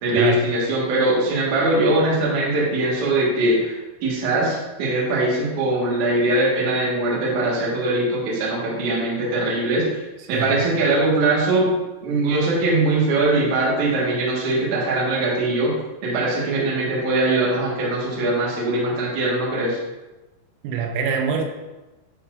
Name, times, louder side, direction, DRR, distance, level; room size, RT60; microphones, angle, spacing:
voice 1, 0.0-3.7 4.0-9.9 10.3-11.7 12.0-15.7 16.0-19.8, right 2 dB, 65° right, -5 dB, 1.9 m, -21 dB
voice 2, 20.6-21.5, right 6 dB, 90° right, 4 dB, 3.3 m, -24 dB
11.0 x 4.0 x 2.5 m, 1.1 s
omnidirectional pair, 5.9 m